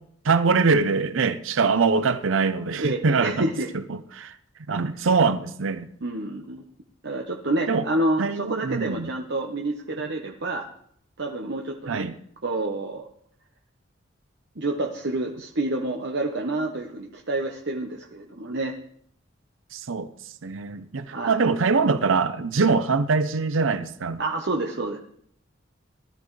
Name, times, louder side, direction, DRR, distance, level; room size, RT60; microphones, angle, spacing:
voice 1, 0.2-3.5 3.7-4.3 4.7-5.9 7.7-7.9 8.2-9.1 11.9-12.1 19.7-20.1 20.4-24.2, right 4 dB, 85° right, 0.6 m, -23 dB
voice 2, 2.7-3.7 6.0-6.6 7.0-10.7 11.2-12.1 12.4-13.1 14.6-18.7 21.1-21.4 24.2-25.0, right 2 dB, 60° right, 1.0 m, -28 dB
18.5 x 13.0 x 3.2 m
head